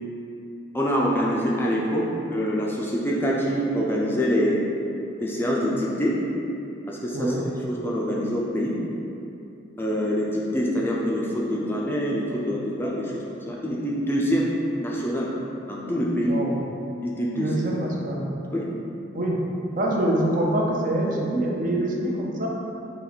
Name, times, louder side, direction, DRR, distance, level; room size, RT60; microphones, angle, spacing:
voice 1, 0.7-2.0 2.3-4.7 5.2-6.1 6.9-7.3 7.7-8.7 9.8-14.5 14.8-15.3 15.7-16.3 17.0-17.5 18.5-18.6, equal, 10° left, -4 dB, 0.4 m, -25 dB
voice 2, 17.3-18.2 19.1-19.4 19.8-22.5, right 1 dB, 45° right, -2 dB, 0.6 m, -25 dB
4.3 x 2.9 x 4.0 m, 2.7 s
head